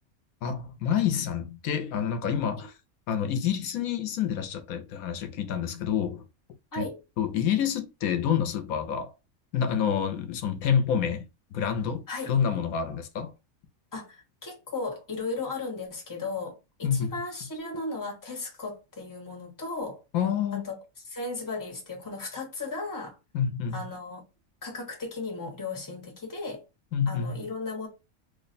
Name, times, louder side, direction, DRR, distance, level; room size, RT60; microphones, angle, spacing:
voice 1, 0.4-2.7 3.1-6.2 6.8-6.9 7.2-9.1 9.5-13.3 16.8-17.2 20.1-20.7 23.3-23.9 26.9-27.4, left 8 dB, 90° left, 1.1 m, -28 dB
voice 2, 13.9-20.0 20.5-20.8 21.1-23.2 23.7-24.2 24.6-26.6 27.1-27.9, left 3 dB, 15° left, 0.9 m, -36 dB
3.1 x 2.1 x 4.0 m
omnidirectional pair, 1.5 m